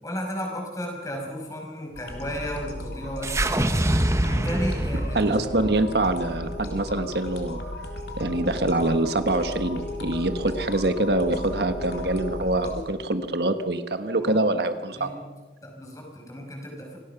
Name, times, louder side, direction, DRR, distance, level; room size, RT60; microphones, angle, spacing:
voice 1, 0.0-3.7 4.2-5.4 14.2-14.4 15.0-15.2 15.6-17.0, equal, 20° left, 1 dB, 5.6 m, -34 dB
sound 1, 1.9-12.9, left 1 dB, 70° left, 3.4 m, -35 dB
sound 2, 3.2-7.5, right 1 dB, 15° right, 0.9 m, -26 dB
voice 2, 5.1-7.6 8.2-15.1, right 2 dB, 70° right, 9 dB, 1.3 m, -25 dB
27.0 x 19.0 x 5.9 m, 1.2 s
head